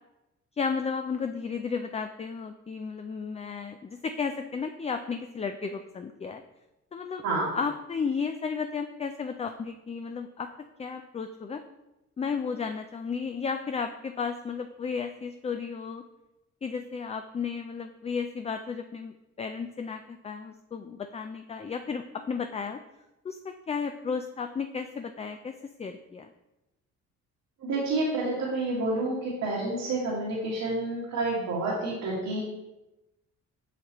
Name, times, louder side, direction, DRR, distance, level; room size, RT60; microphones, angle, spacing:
voice 1, 0.6-6.4 6.9-7.2 7.5-10.5 10.8-11.6 12.2-16.0 16.6-22.8 23.2-23.4 23.7-26.3, left 5 dB, 20° left, 7 dB, 0.4 m, -33 dB
voice 2, 27.6-32.4, right 2 dB, 90° right, -7 dB, 1.9 m, -29 dB
8.1 x 5.6 x 3.0 m, 0.95 s
cardioid pair, 90°, 30 cm